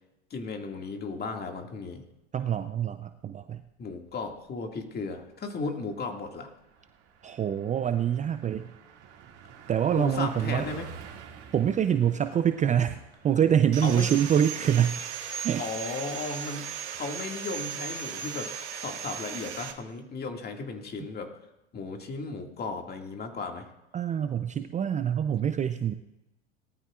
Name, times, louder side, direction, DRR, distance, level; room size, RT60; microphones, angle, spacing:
voice 1, 0.3-2.0 3.8-6.5 9.9-10.9 13.8-14.1 15.6-21.3 21.7-23.7, left 3 dB, 30° left, 3 dB, 2.2 m, -35 dB
voice 2, 2.3-3.6 7.2-8.7 9.7-10.6 11.5-15.0 15.4-15.6 23.9-25.9, right 9 dB, 20° right, 10 dB, 0.6 m, -25 dB
Car passing by, 3.9-4.5 4.8-5.0 5.3-19.5, right 7 dB, 45° right, 2.4 m, -51 dB
Sawing, 13.7-19.7, right 7 dB, 80° right, 1.5 m, -37 dB
19.0 x 13.5 x 2.5 m, 0.92 s
hypercardioid pair, 90°, 34 cm